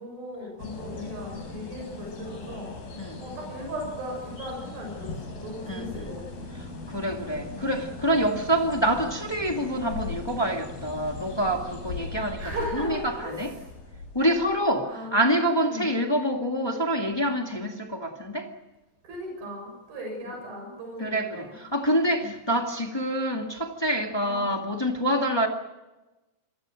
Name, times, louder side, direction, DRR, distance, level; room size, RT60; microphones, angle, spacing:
voice 1, 0.0-2.7 3.2-6.5 6.9-7.1 8.2-8.4 12.4-13.5 14.2-14.4 14.8-15.2 15.6-15.9 19.0-21.5 22.2-22.3 24.2-24.5, equal, 60° right, 9.0 m, -37 dB
sound 1, 0.6-14.6, left 3 dB, 60° left, 6.9 m, -39 dB
voice 2, 5.7-6.2 6.6-12.4 12.8-13.5 14.1-18.5 20.3-20.4 21.0-25.5, right 1 dB, 20° left, 0.6 m, -26 dB
27.5 x 23.0 x 6.4 m
omnidirectional pair, 4.8 m